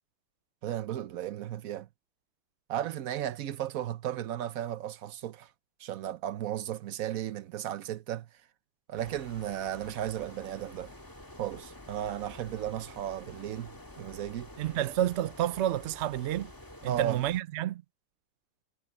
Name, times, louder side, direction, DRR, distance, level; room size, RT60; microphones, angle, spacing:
voice 1, 0.6-1.9 2.7-5.5 5.8-8.3 8.9-10.9 11.4-14.5 16.9-17.2, right 11 dB, 60° right, 1.0 m, -35 dB
sound 1, 9.0-17.4, left 1 dB, 10° left, 1.6 m, -49 dB
voice 2, 14.6-16.5 16.8-17.8, right 12 dB, 80° right, 0.6 m, -29 dB
omnidirectional pair, 1.9 m